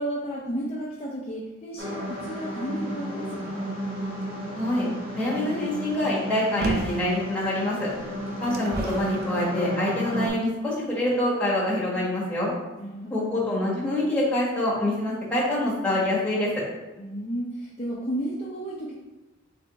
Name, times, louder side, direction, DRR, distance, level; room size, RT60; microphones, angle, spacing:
voice 1, 0.0-3.7 12.8-13.6 17.0-18.9, right 1 dB, 30° left, -6 dB, 0.6 m, -33 dB
sound 1, 1.8-10.3, equal, 75° right, 1.1 m, -33 dB
voice 2, 4.5-4.9 5.1-7.9 8.4-12.5 13.1-16.5, left 1 dB, 5° left, -7 dB, 1.3 m, -26 dB
sound 2, 6.6-7.1 7.9-9.2 10.0-10.1, right 2 dB, 50° right, 0.6 m, -30 dB
3.4 x 3.3 x 4.0 m, 1.1 s
head